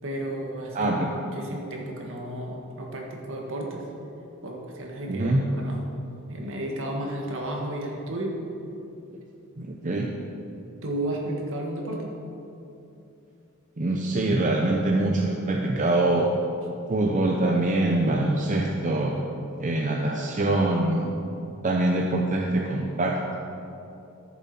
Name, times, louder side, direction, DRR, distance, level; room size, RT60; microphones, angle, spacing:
voice 1, 0.0-0.9 1.3-3.8 4.4-5.8 6.3-8.3 10.8-12.1, right 1 dB, 65° right, 0 dB, 1.7 m, -33 dB
voice 2, 0.7-1.1 5.1-5.4 9.6-10.1 13.8-16.3 16.9-19.1 19.6-21.1 21.6-23.3, right 2 dB, 35° right, 0 dB, 0.7 m, -24 dB
13.5 x 7.2 x 4.3 m, 2.8 s
head